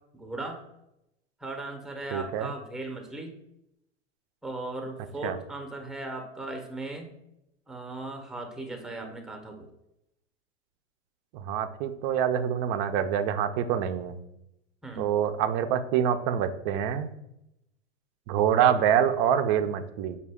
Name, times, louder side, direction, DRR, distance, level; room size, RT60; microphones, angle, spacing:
voice 1, 0.1-0.6 1.4-3.4 4.4-7.1 7.7-9.7 14.8-15.1, right 2 dB, ahead, 3 dB, 0.7 m, -37 dB
voice 2, 2.1-2.5 5.2-5.4 11.3-14.2 15.0-17.1 18.3-20.2, right 9 dB, 35° right, 10 dB, 0.4 m, -26 dB
5.3 x 2.3 x 3.4 m, 0.84 s
hypercardioid pair, 95°, 36 cm